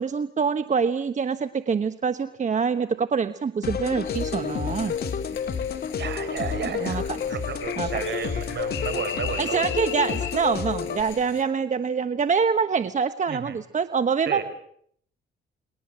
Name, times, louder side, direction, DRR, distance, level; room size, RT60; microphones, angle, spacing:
voice 1, 0.0-4.9 6.8-7.0 7.8-8.0 9.4-14.4, right 6 dB, 40° right, 11 dB, 1.2 m, -25 dB
sound 1, 3.6-11.0, left 7 dB, 50° left, 2.3 m, -30 dB
sound 2, 4.1-11.4, left 10 dB, 80° left, 5.2 m, -38 dB
voice 2, 6.0-9.7 13.3-13.6 14.2-14.4, right 7 dB, 60° right, 11 dB, 5.3 m, -33 dB
30.0 x 21.0 x 7.7 m, 0.66 s
cardioid pair, 90°, 20 cm